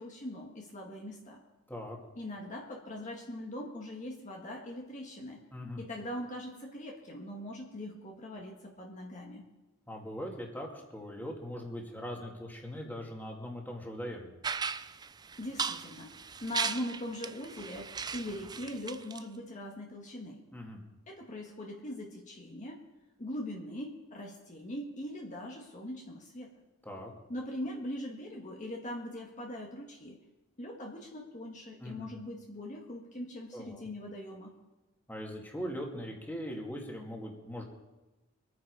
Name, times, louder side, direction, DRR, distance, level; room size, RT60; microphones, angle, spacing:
voice 1, 0.0-1.4 2.2-5.4 5.8-9.4 15.4-20.4 21.1-22.8 23.2-26.6 27.3-30.2 30.6-34.5, left 1 dB, 40° left, -1 dB, 1.7 m, -41 dB
voice 2, 5.5-5.8 9.9-14.3 20.5-20.8 26.8-27.1 31.8-32.1 33.5-33.9 35.1-37.6, equal, 10° left, 0 dB, 2.3 m, -40 dB
sound 1, 14.4-19.2, right 6 dB, 20° right, 0.4 m, -37 dB
24.5 x 9.4 x 4.8 m, 1.1 s
head